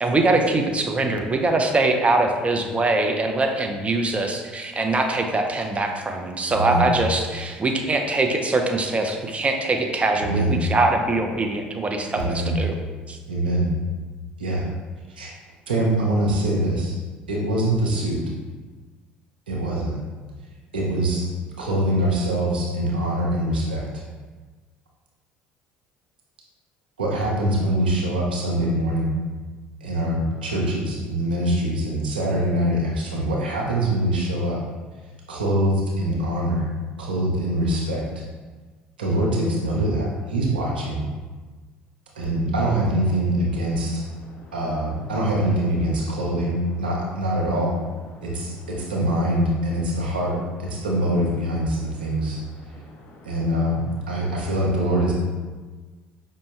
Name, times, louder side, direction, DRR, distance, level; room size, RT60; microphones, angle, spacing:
voice 1, 0.0-12.7 13.1-13.2, right 2 dB, 25° right, 4 dB, 0.6 m, -23 dB
voice 2, 6.5-6.9 10.2-10.6 12.2-12.6 13.3-13.7 14.4-14.7 15.2-15.3 15.7-17.0 17.3-18.2 19.5-19.9 20.7-21.3 21.6-24.0 27.0-29.1 29.8-34.6 35.3-36.6 37.0-38.2 39.0-41.0 42.1-44.1 44.5-47.8 48.2-52.4 53.2-55.1, right 1 dB, 85° right, -3 dB, 0.7 m, -24 dB
voice 3, 44.2-44.6 48.1-48.6 50.8-50.9 51.8-53.4 54.0-54.5, left 2 dB, 45° left, 0 dB, 0.5 m, -48 dB
5.2 x 2.2 x 3.1 m, 1.4 s
hypercardioid pair, 60°, 5 cm